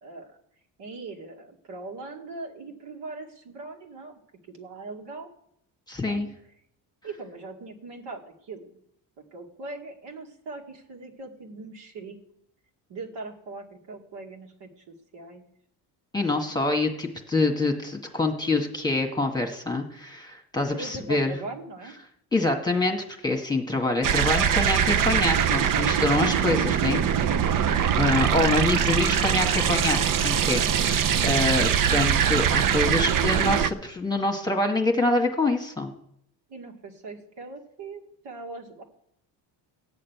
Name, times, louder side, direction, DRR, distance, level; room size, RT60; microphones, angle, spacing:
voice 1, 0.0-0.4 0.8-4.1 4.5-5.3 6.0-6.2 7.0-8.8 9.2-12.2 12.9-14.7 15.1-15.4 20.7-21.9 28.8-28.9 36.5-38.8, right 3 dB, 65° right, 1 dB, 2.5 m, -40 dB
voice 2, 5.9-6.3 16.1-21.3 22.3-27.0 28.0-35.9, left 2 dB, 10° left, 2 dB, 1.6 m, -26 dB
sound 1, 24.0-33.7, right 8 dB, 50° right, 0.7 m, -22 dB
12.5 x 6.6 x 9.3 m, 0.73 s
cardioid pair, 135°, 44 cm